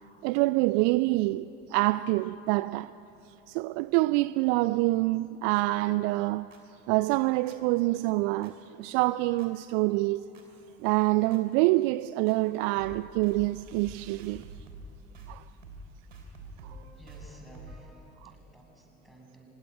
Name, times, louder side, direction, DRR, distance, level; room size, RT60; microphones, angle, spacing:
voice 1, 0.2-2.9 3.5-6.5 6.9-10.2 10.8-14.4 15.3-15.4 18.2-18.3, right 20 dB, 55° right, 0.5 m, -26 dB
sound 1, 5.5-5.6 6.5-6.6 7.5-7.6 8.4-8.5 9.4-9.5 10.3-10.4 11.3-11.4 12.3-12.4 12.7-13.0 13.2-13.4 13.7-13.9 14.2-14.9 15.1-15.4 15.6-15.8 16.1-18.0, right 2 dB, 80° right, 3.3 m, -46 dB
voice 2, 17.0-19.5, right 1 dB, ahead, 6.6 m, -54 dB
24.5 x 21.5 x 9.6 m
figure-of-eight pair, 60°, 37 cm